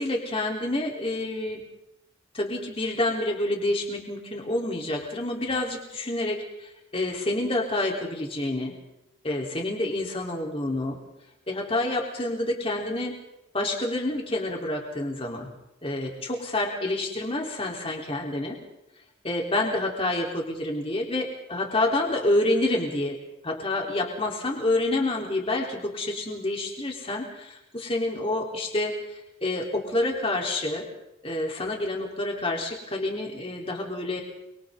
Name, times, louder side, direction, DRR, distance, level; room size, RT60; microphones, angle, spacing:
voice 1, 0.0-1.6 2.3-8.8 9.2-11.0 11.5-13.2 13.5-15.5 15.8-18.6 19.2-23.2 23.4-30.8 31.2-34.2, left 2 dB, 30° left, 0 dB, 3.8 m, -28 dB
29.0 x 23.5 x 3.9 m, 0.89 s
head